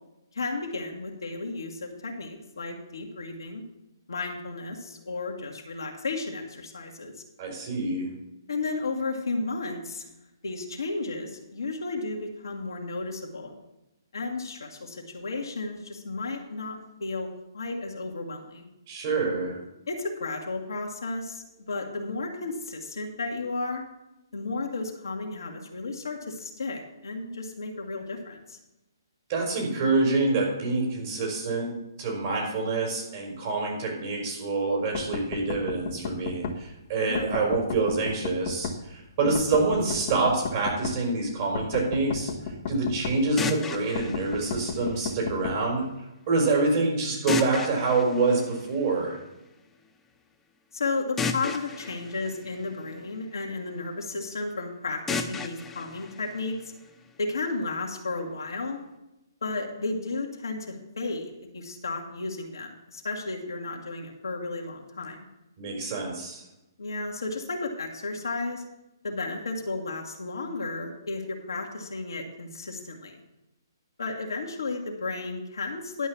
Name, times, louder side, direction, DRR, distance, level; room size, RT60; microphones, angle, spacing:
voice 1, 0.3-3.6 4.1-7.1 8.5-10.1 10.4-13.6 14.1-18.7 19.9-23.8 24.3-28.6 37.0-37.3 39.2-39.4 50.7-56.7 57.2-58.8 59.4-65.3 66.8-68.6 69.0-73.2 74.0-76.1, left 3 dB, 70° left, 1 dB, 1.8 m, -33 dB
voice 2, 7.4-8.1 18.9-19.6 29.3-31.7 32.0-42.3 42.7-45.8 46.3-49.2 65.6-66.4, right 3 dB, 40° right, 0 dB, 4.5 m, -26 dB
sound 1, 35.0-36.6 37.2-38.8 39.4-41.0 41.6-43.2 44.0-45.6, left 5 dB, 40° left, 1.4 m, -33 dB
sound 2, 43.4-45.4 47.3-49.2 51.2-53.4 55.1-57.1, left 4 dB, 10° left, 0.7 m, -35 dB
11.0 x 5.5 x 7.1 m, 0.93 s
figure-of-eight pair, 130°, 2 cm